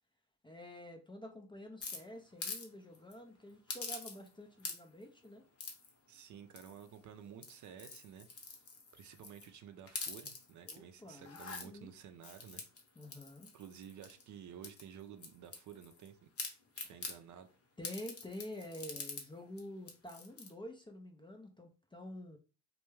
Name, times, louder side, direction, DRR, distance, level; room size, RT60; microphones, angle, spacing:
voice 1, 0.4-5.4 10.6-11.9 13.0-13.5 17.8-22.4, left 1 dB, 15° left, 3 dB, 0.4 m, -49 dB
sound 1, 1.8-2.7 2.9-3.1 3.7-4.3 4.6-5.0 5.6-5.9 6.5-6.9 7.3-9.5 9.9-10.7 11.2-11.7 12.2-14.2 14.6-16.1 16.4-17.2 17.8-19.3 19.6-19.7 19.9-20.5, left 4 dB, 35° left, 0.8 m, -45 dB
voice 2, 6.1-8.3 8.9-12.6 13.5-16.3 16.8-17.5, right 8 dB, 50° right, 8 dB, 0.5 m, -52 dB
2.2 x 2.1 x 3.1 m, 0.35 s
supercardioid pair, 70°, 39 cm